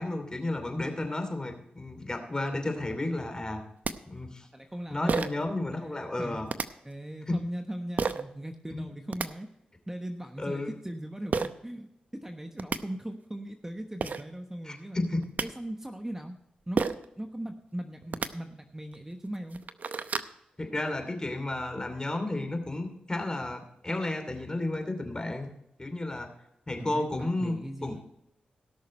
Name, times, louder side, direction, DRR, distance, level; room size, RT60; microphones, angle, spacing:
voice 1, 0.0-3.6 4.1-4.5 4.9-6.5 7.3-7.4 8.7-8.9 10.4-10.7 14.6-15.3 20.6-25.5 25.8-26.3 26.7-28.0, left 2 dB, 25° left, 6 dB, 2.7 m, -32 dB
sound 1, 3.5-3.6 3.8-3.9 5.1-5.5 6.5-6.7 8.0-8.2 8.9-9.3 11.3-11.5 12.3-12.4 12.6-12.8 13.7-13.8 14.0-14.2 15.0-15.5 16.8-17.1 18.0-18.3 18.9-19.0 19.4-20.3, right 5 dB, 60° right, 0.7 m, -30 dB
voice 2, 4.5-5.3 5.8-6.4 6.8-9.5 9.9-15.1 15.4-16.3 16.7-19.6 26.8-28.0, right 1 dB, 15° right, 5 dB, 1.1 m, -39 dB
17.5 x 6.4 x 4.3 m, 0.79 s
cardioid pair, 60°, 3 cm